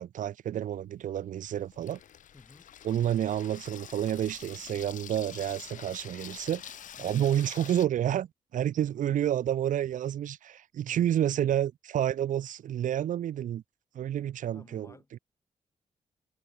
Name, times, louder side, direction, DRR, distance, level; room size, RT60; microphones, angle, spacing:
voice 1, 0.0-2.0 2.8-13.6 13.9-15.2, right 11 dB, 85° right, 0.8 m, -30 dB
Water tap faucet / Sink (filling or washing), 0.7-7.9, left 10 dB, 85° left, 1.5 m, -47 dB
voice 2, 2.3-2.7 7.0-7.2 9.1-9.2 10.9-11.1 13.9-14.1 14.5-15.2, left 3 dB, 20° left, 7.4 m, -55 dB
wide cardioid pair, 125°, 13 cm